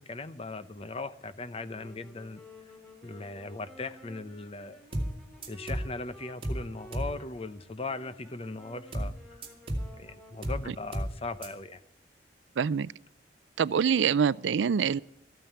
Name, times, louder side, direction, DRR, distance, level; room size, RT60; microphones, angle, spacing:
voice 1, 0.0-2.4 3.0-4.9 5.5-9.1 10.0-11.8, left 3 dB, 30° left, 0.7 m, -39 dB
Wind instrument woodwind instrument, 1.7-11.3, equal, 5° left, 3.1 m, -53 dB
sound 1, 4.9-5.2 5.4-5.9 6.4-6.7 6.9-7.2 8.9-9.2 9.4-9.9 10.4-10.7 10.9-11.2 11.4-11.5, right 1 dB, 30° right, 2.4 m, -32 dB
voice 2, 12.6-12.9 13.6-15.0, right 7 dB, 90° right, 0.4 m, -25 dB
14.0 x 9.1 x 8.1 m
head